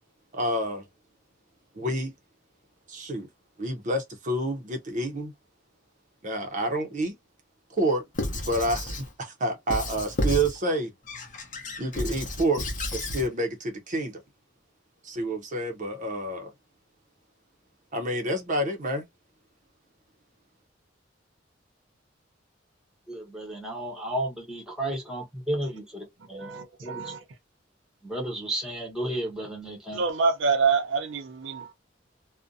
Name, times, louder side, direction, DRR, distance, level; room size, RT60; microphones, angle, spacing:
voice 1, 0.3-0.8 1.7-2.1 2.9-3.3 3.6-5.3 6.2-7.2 7.7-8.0 8.5-10.9 11.8-12.6 12.9-14.2 15.0-16.5 17.9-19.0, right 1 dB, 40° right, 0.6 m, -28 dB
Squeak / Writing, 8.1-9.1 9.7-10.6 11.1-13.3, left 1 dB, 45° left, 0.7 m, -31 dB
voice 2, 23.1-26.5 26.8-27.1 28.0-30.0, right 1 dB, 5° right, 1.0 m, -33 dB
voice 3, 26.3-27.2 29.9-31.7, right 5 dB, 80° right, 0.6 m, -26 dB
2.5 x 2.1 x 2.5 m
head